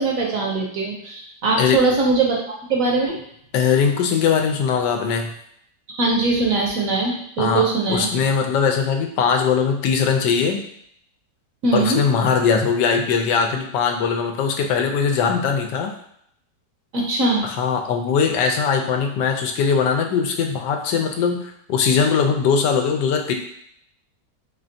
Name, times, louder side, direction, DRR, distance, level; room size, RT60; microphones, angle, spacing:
voice 1, 0.0-2.4 2.7-3.2 5.9-8.1 11.6-12.0 16.9-17.4, right 3 dB, 60° right, -1 dB, 1.0 m, -21 dB
voice 2, 3.5-5.3 7.4-10.6 11.7-15.9 17.4-23.3, left 6 dB, 90° left, 4 dB, 1.2 m, -20 dB
4.3 x 3.2 x 2.6 m, 0.69 s
omnidirectional pair, 1.8 m